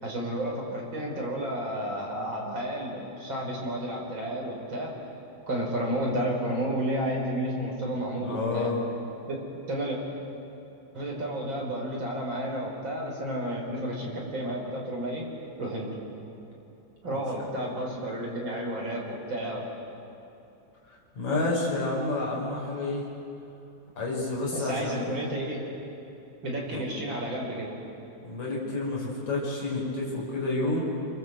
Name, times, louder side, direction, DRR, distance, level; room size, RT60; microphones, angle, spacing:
voice 1, 0.0-4.9 5.5-8.7 9.3-9.4 9.7-10.0 10.9-15.3 15.6-16.0 17.0-19.7 24.5-25.6 26.4-27.7, right 1 dB, 25° right, -2 dB, 5.2 m, -31 dB
voice 2, 8.2-8.8 17.1-17.2 21.2-23.0 24.0-25.1 26.7-26.8 28.2-30.8, left 2 dB, 35° left, -4 dB, 7.1 m, -29 dB
27.0 x 24.0 x 8.0 m, 2.8 s
omnidirectional pair, 5.7 m